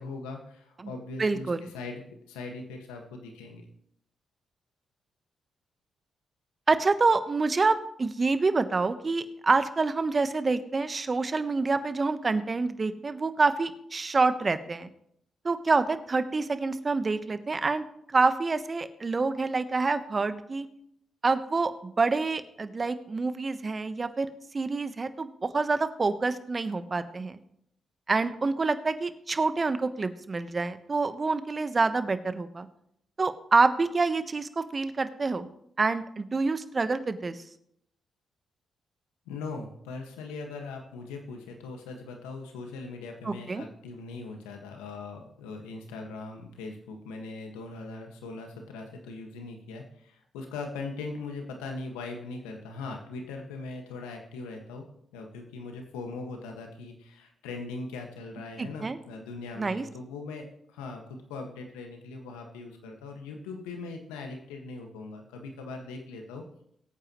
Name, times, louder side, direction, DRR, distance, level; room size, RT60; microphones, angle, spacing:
voice 1, 0.0-2.0 2.3-3.6 39.2-54.8 55.1-66.4, left 3 dB, 90° left, 3 dB, 1.6 m, -40 dB
voice 2, 1.2-1.7 6.7-14.9 15.4-20.7 21.2-24.3 24.5-27.4 28.1-32.7 33.2-35.5 35.8-37.4 43.2-43.6 58.6-59.0 59.6-59.8, right 3 dB, 40° right, 11 dB, 1.1 m, -27 dB
21.5 x 9.0 x 3.1 m, 0.73 s
hypercardioid pair, 45°, 0 cm